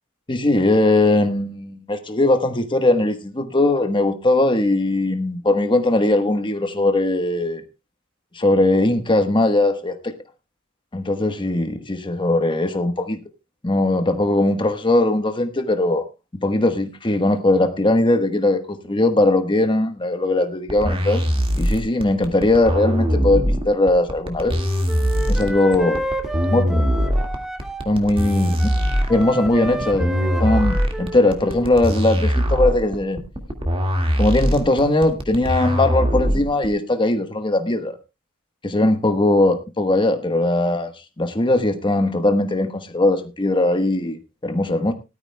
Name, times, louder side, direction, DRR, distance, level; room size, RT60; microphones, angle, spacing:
voice 1, 0.3-7.6 8.3-10.1 10.9-13.2 13.6-16.0 16.4-21.3 21.6-24.5 25.3-26.1 26.5-26.8 27.8-28.5 29.1-33.2 34.2-37.9 38.6-40.9 41.2-44.9, left 2 dB, 25° left, 1.2 m, -19 dB
sound 1, 20.7-36.7, equal, 25° right, 1.9 m, -21 dB
Wind instrument woodwind instrument, 24.4-27.9 28.1-31.7, right 1 dB, 5° right, 0.9 m, -31 dB
18.5 x 13.0 x 2.2 m
head